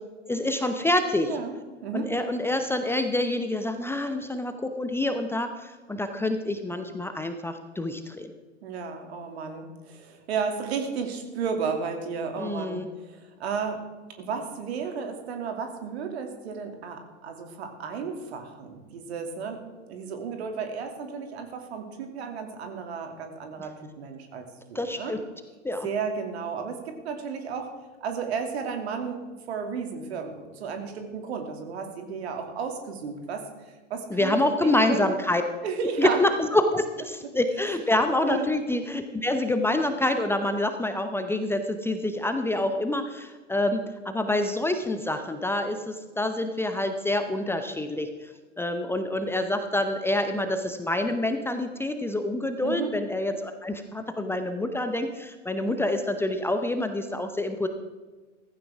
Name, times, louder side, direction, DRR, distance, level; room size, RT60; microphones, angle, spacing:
voice 1, 0.3-1.3 1.9-8.3 12.4-12.9 23.6-23.7 24.7-25.2 25.6-25.9 34.1-35.4 36.0-57.7, left 1 dB, 5° left, 7 dB, 0.8 m, -27 dB
voice 2, 1.8-2.1 8.6-13.8 14.2-19.6 19.9-25.1 25.8-27.7 28.0-29.2 29.5-33.4 33.9-35.1 35.6-36.2 38.2-38.5 52.6-52.9, right 6 dB, 60° right, 5 dB, 2.6 m, -33 dB
15.5 x 15.5 x 3.6 m, 1.3 s
figure-of-eight pair, 90°, 36 cm